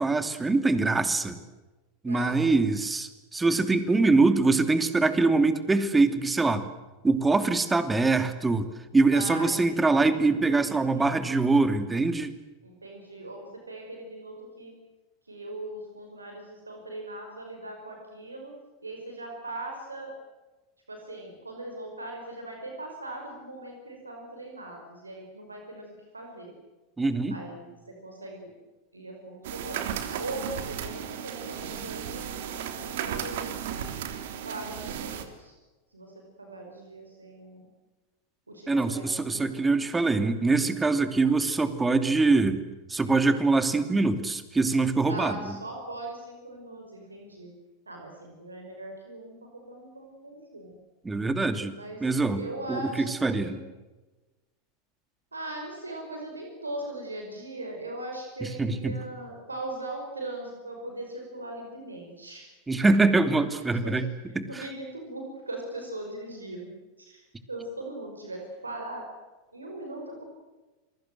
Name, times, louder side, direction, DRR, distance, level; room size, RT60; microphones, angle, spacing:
voice 1, 0.0-1.4 2.0-6.6 7.0-8.7 8.9-12.3 27.0-27.4 38.7-42.6 42.9-45.5 51.0-51.7 52.0-52.4 52.7-53.6 58.4-58.9 62.7-64.0 64.3-64.7, right 3 dB, 15° right, 10 dB, 2.8 m, -24 dB
voice 2, 2.1-2.4 9.1-10.4 10.6-11.2 12.6-14.7 15.3-18.5 18.8-20.1 20.9-26.5 27.3-27.7 28.0-28.5 28.9-29.8 30.2-33.5 34.4-35.5 35.9-37.7 38.5-39.6 45.1-47.5 47.9-50.8 51.7-53.6 55.3-62.5 63.8-64.0 64.5-66.7 67.0-69.1 69.5-70.2, right 1 dB, 90° right, 2 dB, 5.4 m, -40 dB
sound 1, 29.4-35.2, right 9 dB, 60° right, 3.1 m, -35 dB
28.5 x 22.5 x 7.8 m, 1.2 s
figure-of-eight pair, 90°, 0 cm